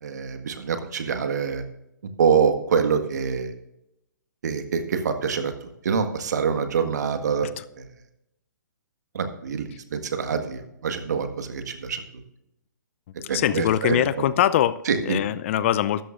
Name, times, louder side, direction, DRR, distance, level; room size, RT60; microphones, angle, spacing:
voice 1, 0.0-1.6 2.2-3.5 4.4-7.5 7.8-7.9 9.1-12.0 13.3-14.0 14.9-15.2, right 6 dB, 60° right, 7 dB, 1.7 m, -25 dB
voice 2, 13.2-14.8 15.1-16.0, left 12 dB, 40° left, 16 dB, 0.5 m, -22 dB
14.5 x 13.0 x 2.5 m, 0.85 s
figure-of-eight pair, 125°, 10 cm